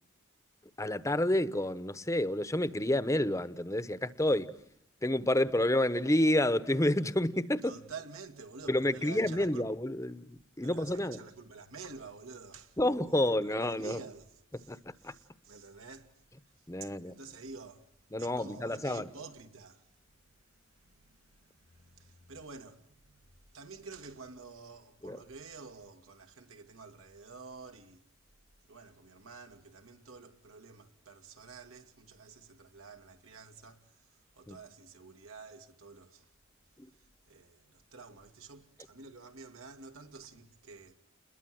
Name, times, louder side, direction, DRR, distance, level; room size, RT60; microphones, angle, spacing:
voice 1, 0.8-4.5 5.0-7.8 8.7-11.2 12.8-14.0 14.7-15.1 16.7-17.1 18.1-19.1 25.0-25.2 34.5-34.6, left 1 dB, 15° left, 0.9 m, -29 dB
voice 2, 7.6-9.7 10.6-16.1 16.5-28.1 28.6-36.3 37.3-40.9, right 4 dB, 80° right, 2.2 m, -50 dB
29.5 x 21.5 x 7.7 m
head